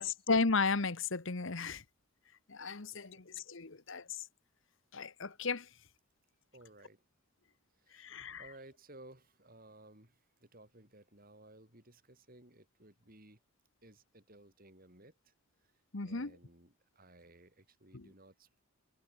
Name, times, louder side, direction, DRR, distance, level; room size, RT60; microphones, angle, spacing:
voice 1, 0.0-1.8 2.5-4.2 4.9-5.7 7.9-8.5 15.9-16.4 17.9-18.1, left 4 dB, 60° left, 1.2 m, -34 dB
voice 2, 6.5-7.0 7.8-13.4 13.8-15.3 16.0-18.6, right 1 dB, 40° right, 6.7 m, -58 dB
head